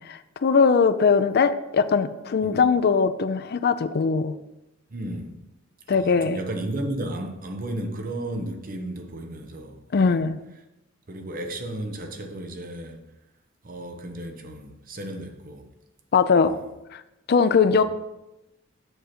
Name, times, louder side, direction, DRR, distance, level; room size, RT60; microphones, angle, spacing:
voice 1, 0.1-4.4 5.9-6.4 9.9-10.4 16.1-16.5 16.9-17.0 17.3-17.8, left 5 dB, 55° left, 0.4 m, -20 dB
voice 2, 4.9-5.4 5.9-10.2 11.1-13.0 13.6-15.7 16.4-16.6 17.7-17.8, right 1 dB, 45° right, 0.9 m, -34 dB
8.0 x 6.2 x 4.3 m
head